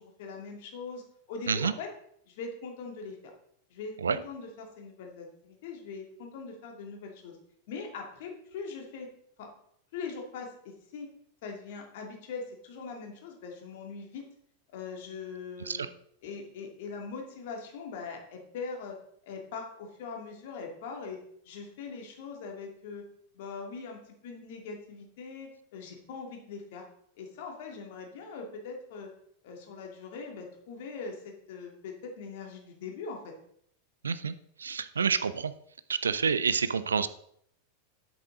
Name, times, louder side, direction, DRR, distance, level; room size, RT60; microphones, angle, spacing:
voice 1, 0.0-1.9 2.3-3.3 3.7-7.4 7.7-9.1 9.4-9.5 9.9-11.1 11.4-14.3 14.7-15.9 16.2-19.0 19.3-21.2 21.4-23.0 23.3-26.8 27.2-29.1 29.4-33.3, left 4 dB, 50° left, 1 dB, 2.4 m, -41 dB
voice 2, 34.0-34.3 34.6-35.5 35.9-37.1, right 6 dB, 70° right, 14 dB, 0.5 m, -28 dB
9.5 x 8.0 x 3.9 m, 0.67 s
figure-of-eight pair, 90°, 0 cm